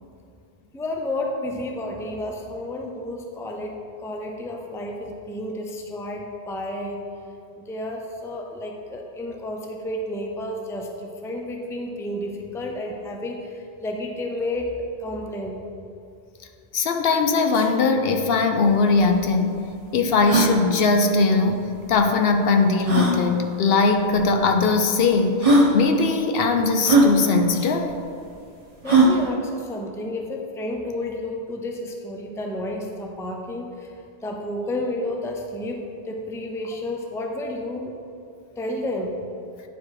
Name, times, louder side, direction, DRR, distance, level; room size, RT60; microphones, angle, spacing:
voice 1, 0.7-7.0 7.6-15.6 28.8-33.9 34.2-38.0 38.6-39.1, left 1 dB, 5° left, 1 dB, 0.5 m, -31 dB
voice 2, 16.7-19.6 19.9-21.6 21.9-28.0, left 4 dB, 70° left, 5 dB, 0.8 m, -20 dB
sound 1, 18.7-18.8 18.9-19.0 19.6-19.7 20.2-20.5 21.9-22.0 22.8-23.2 24.2-24.3 25.0-25.1 25.4-25.7 26.8-27.1 28.9-29.2, right 2 dB, 35° right, 1.0 m, -17 dB
9.1 x 4.7 x 4.7 m, 2.5 s
omnidirectional pair, 1.1 m